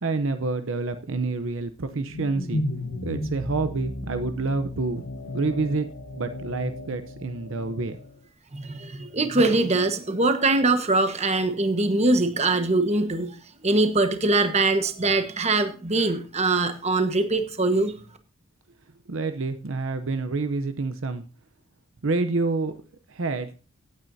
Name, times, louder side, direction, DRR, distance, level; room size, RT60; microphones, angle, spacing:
voice 1, 0.0-2.6 3.0-5.9 6.1-8.0 19.1-21.2 22.0-22.7 23.1-23.5, right 3 dB, 65° right, 9 dB, 0.7 m, -28 dB
sound 1, 1.8-8.2, left 1 dB, 80° left, 1.2 m, -34 dB
voice 2, 8.5-13.3 13.6-18.0, right 2 dB, 30° right, 8 dB, 1.2 m, -22 dB
16.5 x 9.0 x 2.7 m, 0.38 s
head